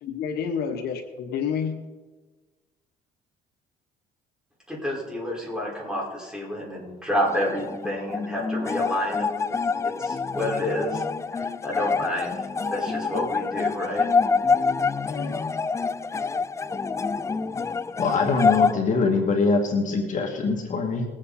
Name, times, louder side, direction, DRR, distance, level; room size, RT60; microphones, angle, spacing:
voice 1, 0.0-1.8 15.0-15.4, left 7 dB, 70° left, 6 dB, 1.2 m, -29 dB
voice 2, 4.7-9.5 10.0-11.0 11.3-12.4 12.7-14.1, equal, 5° right, -4 dB, 5.2 m, -29 dB
sound 1, 7.2-18.7, left 4 dB, 15° left, 0.3 m, -26 dB
voice 3, 18.0-21.1, left 4 dB, 50° left, 1 dB, 2.3 m, -23 dB
21.0 x 8.5 x 4.3 m, 1.3 s
cardioid pair, 110°, 17 cm